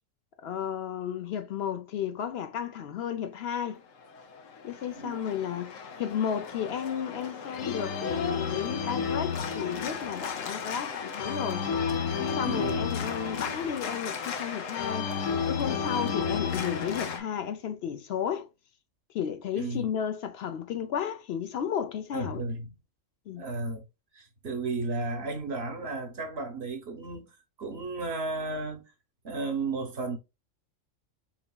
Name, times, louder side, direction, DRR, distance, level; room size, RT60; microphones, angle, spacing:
voice 1, 0.4-3.8 4.6-11.7 12.2-15.1 15.5-18.5 19.1-22.4 23.3-23.4, left 8 dB, 60° left, 0.7 m, -33 dB
Organ, 4.0-17.2, left 6 dB, 80° left, 1.2 m, -32 dB
voice 2, 12.4-12.9 16.0-16.1 19.6-19.9 22.1-22.7 23.3-23.8 24.1-27.2 27.6-28.8 29.2-30.2, right 3 dB, 55° right, 1.1 m, -33 dB
4.5 x 3.9 x 2.2 m
omnidirectional pair, 1.3 m